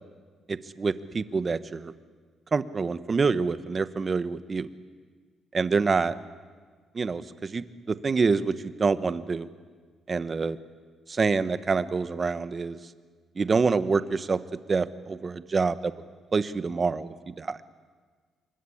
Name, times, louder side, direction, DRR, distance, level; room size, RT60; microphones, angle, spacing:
voice 1, 0.5-1.9 2.5-4.7 5.5-6.1 6.9-9.5 10.1-10.6 11.1-12.8 13.3-15.9 16.3-17.6, right 4 dB, 35° right, 13 dB, 1.3 m, -26 dB
28.5 x 24.0 x 8.7 m, 1.5 s
cardioid pair, 100°, 0 cm